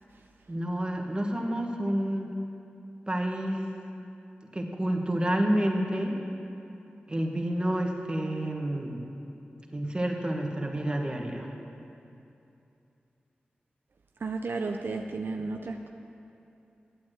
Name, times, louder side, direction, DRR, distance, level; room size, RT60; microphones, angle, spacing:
voice 1, 0.5-2.4 3.1-3.6 4.5-6.1 7.1-9.0 9.7-11.5, right 1 dB, 25° right, 2 dB, 1.5 m, -29 dB
voice 2, 14.2-15.9, right 3 dB, 70° right, 4 dB, 0.5 m, -33 dB
9.5 x 8.8 x 8.0 m, 2.7 s
wide cardioid pair, 60°, 4 cm